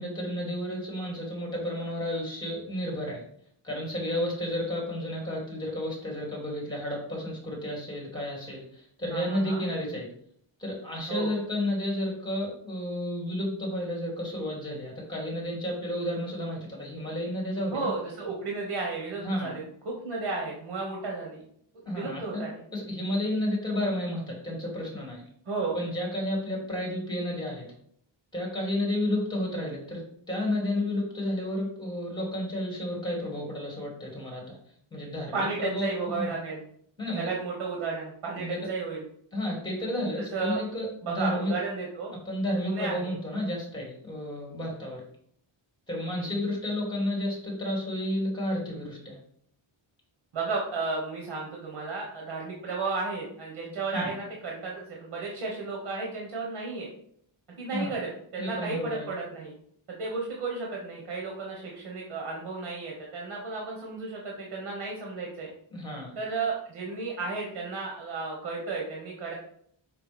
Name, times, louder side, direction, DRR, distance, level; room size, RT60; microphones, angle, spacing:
voice 1, 0.0-3.2 3.6-10.1 10.6-17.9 19.2-19.5 21.9-22.4 22.7-25.2 25.7-27.7 28.3-34.6 34.9-36.3 37.0-37.3 38.4-38.6 39.3-41.5 42.3-45.0 45.9-49.2 53.9-54.1 57.7-58.0 58.4-59.1 65.7-66.1, left 1 dB, 10° left, -2 dB, 2.2 m, -31 dB
voice 2, 9.1-9.6 11.1-11.3 17.7-21.4 21.9-22.6 25.5-25.8 35.3-36.6 37.1-39.0 40.3-40.6 41.0-42.1 42.6-43.1 46.0-46.3 50.3-56.9 57.6-59.5 59.9-65.5 66.1-69.3, right 4 dB, 90° right, -2 dB, 1.5 m, -33 dB
5.9 x 3.3 x 5.2 m, 0.65 s
wide cardioid pair, 165°, 48 cm